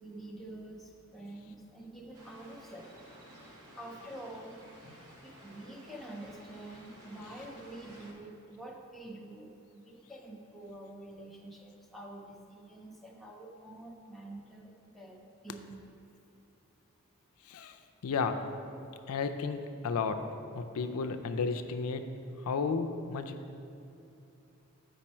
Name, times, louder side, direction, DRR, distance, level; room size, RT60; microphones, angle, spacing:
voice 1, 0.0-0.8 1.1-2.9 3.8-4.5 5.4-15.8, right 1 dB, ahead, -2 dB, 0.6 m, -47 dB
sound 1, 2.1-8.1, equal, 85° right, 1.1 m, -53 dB
voice 2, 17.4-17.8 18.0-18.5 19.1-20.3 20.6-23.6, left 4 dB, 75° left, 7 dB, 0.4 m, -33 dB
7.1 x 5.2 x 4.3 m, 2.8 s
head